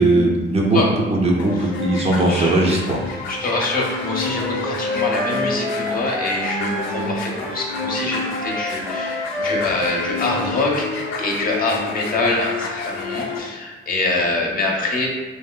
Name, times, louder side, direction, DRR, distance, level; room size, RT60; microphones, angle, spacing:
voice 1, 0.0-0.8 1.1-3.0, right 2 dB, 30° right, -1 dB, 0.5 m, -18 dB
sound 1, 1.4-13.4, left 3 dB, 75° left, 0.5 m, -29 dB
voice 2, 3.3-15.1, left 2 dB, 45° left, -1 dB, 0.7 m, -24 dB
Wind instrument woodwind instrument, 3.8-11.3, left 1 dB, 5° left, 0.7 m, -29 dB
3.0 x 2.7 x 2.2 m, 1.3 s
cardioid pair, 90°, 20 cm